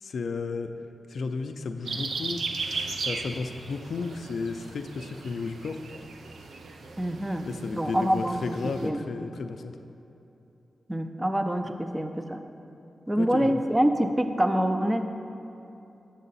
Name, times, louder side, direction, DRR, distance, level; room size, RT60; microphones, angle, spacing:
voice 1, 0.0-0.7 1.1-2.4 3.0-5.8 7.5-9.8 13.2-13.6, left 4 dB, 80° left, 7 dB, 0.3 m, -33 dB
sound 1, 1.8-8.9, right 4 dB, 85° right, 0.5 m, -37 dB
voice 2, 7.0-7.5 7.8-9.0 10.9-12.4 13.1-15.0, equal, 20° right, 7 dB, 0.5 m, -26 dB
7.7 x 6.4 x 4.1 m, 2.8 s
cardioid pair, 50°, 0 cm